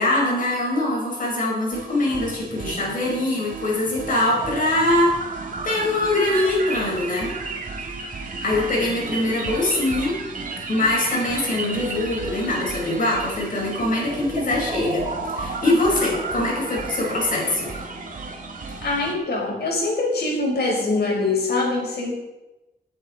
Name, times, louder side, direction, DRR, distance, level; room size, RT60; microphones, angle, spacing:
voice 1, 0.0-5.1 5.6-7.3 8.4-10.2 10.7-15.1 15.3-17.7, left 2 dB, 55° left, -2 dB, 5.4 m, -23 dB
sound 1, 1.7-19.1, right 3 dB, 55° right, 2.0 m, -32 dB
voice 2, 18.8-22.1, left 3 dB, 85° left, -2 dB, 5.3 m, -23 dB
18.5 x 9.2 x 4.5 m, 0.99 s
wide cardioid pair, 170°, 16 cm